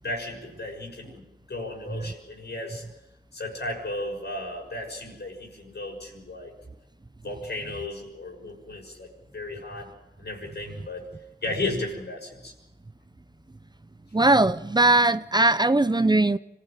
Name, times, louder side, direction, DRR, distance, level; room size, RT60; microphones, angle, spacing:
voice 1, 0.0-2.8 3.3-6.5 7.2-9.9 10.2-11.1 11.4-12.5, left 2 dB, 75° left, 6.9 m, -34 dB
voice 2, 14.1-16.4, right 2 dB, 25° right, 0.7 m, -20 dB
26.5 x 15.5 x 9.1 m
cardioid pair, 45°, 18 cm